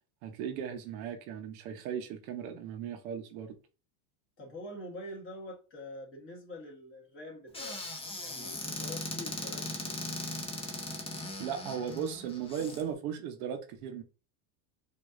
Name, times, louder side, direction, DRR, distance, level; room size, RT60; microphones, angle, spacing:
voice 1, 0.2-3.6 11.4-14.0, right 8 dB, 70° right, 1.0 m, -37 dB
voice 2, 4.4-9.9, left 1 dB, 30° left, 2.1 m, -45 dB
Squeak / Cupboard open or close, 7.5-12.8, left 2 dB, 10° left, 0.9 m, -39 dB
5.1 x 2.7 x 2.6 m
supercardioid pair, 125°, 44 cm